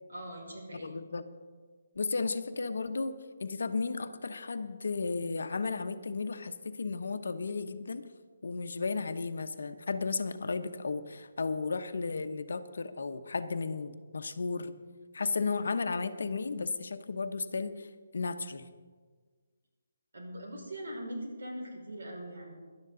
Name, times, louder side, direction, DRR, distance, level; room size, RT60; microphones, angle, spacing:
voice 1, 0.1-1.0 20.1-22.5, equal, 75° right, 0 dB, 5.2 m, -41 dB
voice 2, 0.8-1.3 1.9-8.0 8.4-14.7 15.1-17.9 18.1-18.7, left 4 dB, 70° left, 10 dB, 0.9 m, -34 dB
18.5 x 11.5 x 3.9 m, 1.5 s
hypercardioid pair, 175°, 0 cm